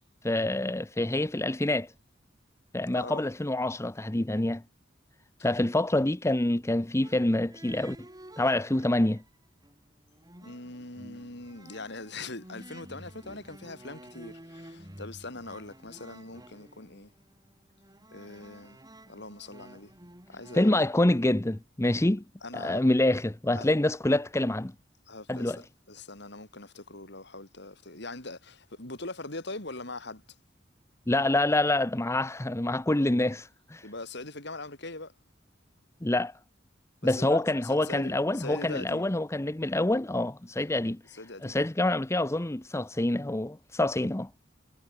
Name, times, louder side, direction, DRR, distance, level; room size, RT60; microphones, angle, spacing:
voice 1, 0.2-1.9 2.7-4.6 5.4-8.0 8.4-9.2 20.5-22.2 22.5-24.7 25.3-25.6 31.1-33.8 36.0-36.3 37.0-41.0 41.4-44.3, left 1 dB, 15° left, 0.8 m, -26 dB
sound 1, 7.0-9.3 9.6-21.6, right 1 dB, 20° right, 8.0 m, -51 dB
voice 2, 10.4-17.1 18.1-18.8 19.1-19.9 20.3-20.9 22.4-22.8 23.5-23.7 25.1-30.2 33.8-35.1 37.0-39.1 41.1-41.6, left 2 dB, 65° left, 6.1 m, -41 dB
head